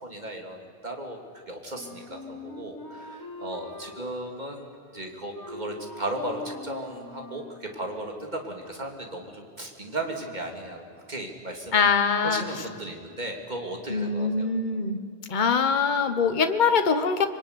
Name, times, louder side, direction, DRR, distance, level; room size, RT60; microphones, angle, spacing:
voice 1, 0.0-4.7 4.9-11.9 12.2-14.5, right 1 dB, 40° right, 2 dB, 3.1 m, -36 dB
Wind instrument woodwind instrument, 1.7-7.6, left 1 dB, 20° left, 3.4 m, -43 dB
voice 2, 11.7-12.4 13.9-15.0 15.3-17.3, left 5 dB, 45° left, 8 dB, 1.3 m, -23 dB
25.5 x 23.0 x 9.8 m, 2.2 s
omnidirectional pair, 1.1 m